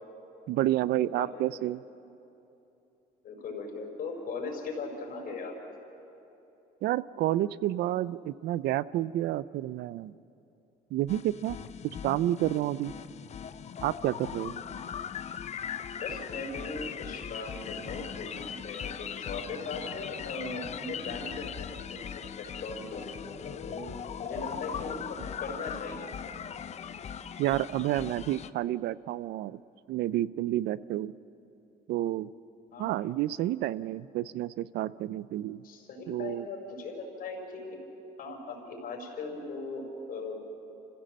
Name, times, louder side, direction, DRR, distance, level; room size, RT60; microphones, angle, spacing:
voice 1, 0.5-1.8 6.8-10.1 10.9-11.6 12.0-12.9 13.8-14.5 27.4-29.6 29.9-31.1 31.9-32.3 32.8-35.6 36.1-36.5, right 14 dB, 70° right, 18 dB, 0.5 m, -30 dB
voice 2, 1.0-1.6 3.2-5.5 14.4-14.7 15.9-23.9 24.2-26.2 32.7-33.0 35.6-37.8 38.2-40.3, left 3 dB, 60° left, 1 dB, 5.1 m, -39 dB
sound 1, 11.1-28.5, left 8 dB, 40° left, 0.7 m, -39 dB
26.5 x 16.0 x 7.6 m, 2.9 s
cardioid pair, 110°, 17 cm